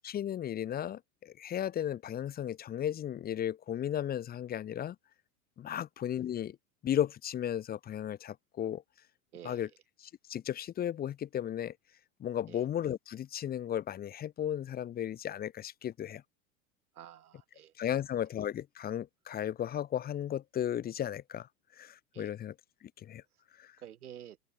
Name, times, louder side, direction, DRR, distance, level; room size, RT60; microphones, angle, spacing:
voice 1, 0.0-5.0 5.6-6.6 6.8-8.8 9.4-9.7 10.0-11.7 12.2-16.2 17.8-21.5 21.8-22.5 23.0-23.2 23.6-23.7, left 10 dB, 20° left, 0.7 m, -35 dB
voice 2, 9.3-9.7 12.5-12.7 16.9-17.7 22.1-22.3 23.8-24.4, right 10 dB, 90° right, 3.4 m, -50 dB
open air
hypercardioid pair, 115°, 43 cm